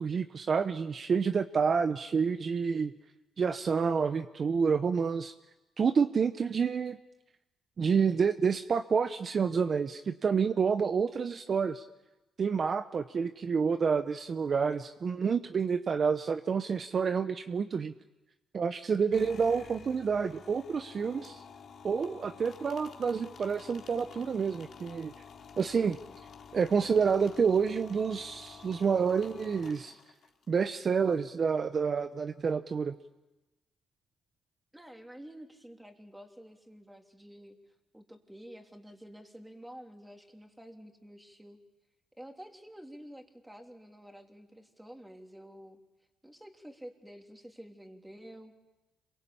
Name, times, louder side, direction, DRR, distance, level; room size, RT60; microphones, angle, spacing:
voice 1, 0.0-2.9 3.4-5.3 5.8-7.0 7.8-11.8 12.4-17.9 18.5-21.4 21.8-25.1 25.6-26.0 26.5-30.0 30.5-33.0, right 6 dB, 45° right, 10 dB, 0.8 m, -28 dB
sound 1, 19.1-30.5, left 6 dB, 60° left, 2.8 m, -50 dB
voice 2, 34.7-37.6 37.9-41.6 42.2-45.8 46.2-48.5, equal, 5° right, 3 dB, 3.4 m, -50 dB
27.0 x 23.5 x 8.6 m, 1.0 s
cardioid pair, 90°, 0 cm